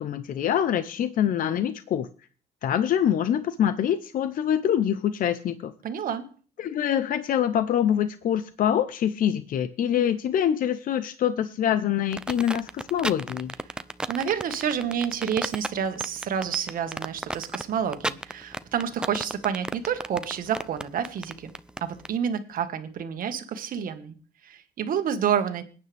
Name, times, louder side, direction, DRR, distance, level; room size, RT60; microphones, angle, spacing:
voice 1, 0.0-2.1 2.6-5.7 6.6-13.5, left 9 dB, 55° left, 12 dB, 0.8 m, -25 dB
voice 2, 5.8-6.3 14.1-21.5 21.8-24.1 24.4-25.6, right 8 dB, 55° right, 8 dB, 1.7 m, -29 dB
sound 1, 12.1-22.1, right 1 dB, 5° right, 0.6 m, -33 dB
21.0 x 9.6 x 3.5 m, 0.40 s
cardioid pair, 110°, 17 cm